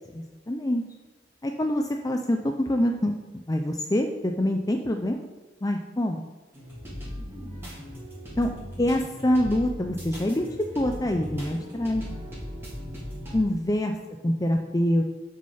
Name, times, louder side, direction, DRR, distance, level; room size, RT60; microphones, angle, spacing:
voice 1, 0.1-0.8 1.4-3.2 3.5-5.3 5.6-6.2 8.4-8.5 8.8-10.5 10.8-12.0 13.3-13.9 14.2-15.0, left 1 dB, 20° left, 4 dB, 0.5 m, -25 dB
sound 1, 6.5-13.3, equal, 15° right, 3.5 m, -38 dB
9.6 x 6.4 x 5.6 m, 1.2 s
head